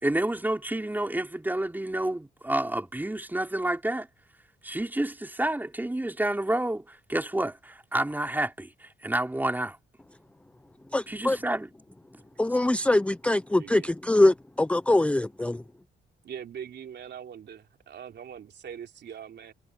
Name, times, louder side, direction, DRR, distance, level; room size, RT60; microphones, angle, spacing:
voice 1, 0.0-4.1 4.6-9.8 11.1-11.7, right 1 dB, 10° right, 4.5 m, -29 dB
voice 2, 10.9-11.4 12.4-15.6, left 1 dB, 5° left, 0.6 m, -23 dB
voice 3, 13.6-13.9 16.2-19.5, right 8 dB, 60° right, 3.1 m, -42 dB
cardioid pair, 90°, 20 cm